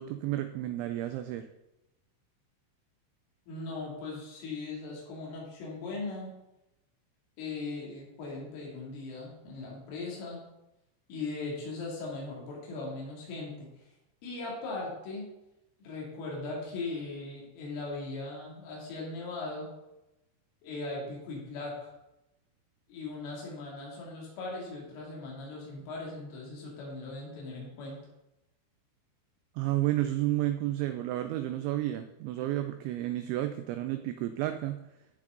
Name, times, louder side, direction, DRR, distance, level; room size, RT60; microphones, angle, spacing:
voice 1, 0.0-1.5 29.6-34.8, right 14 dB, 90° right, 9 dB, 2.6 m, -31 dB
voice 2, 3.5-6.3 7.4-10.4 11.1-13.7 14.2-15.3 15.8-19.7 20.6-21.9 22.9-28.0, left 3 dB, 75° left, -3 dB, 5.2 m, -39 dB
14.5 x 6.2 x 3.9 m, 0.92 s
omnidirectional pair, 5.9 m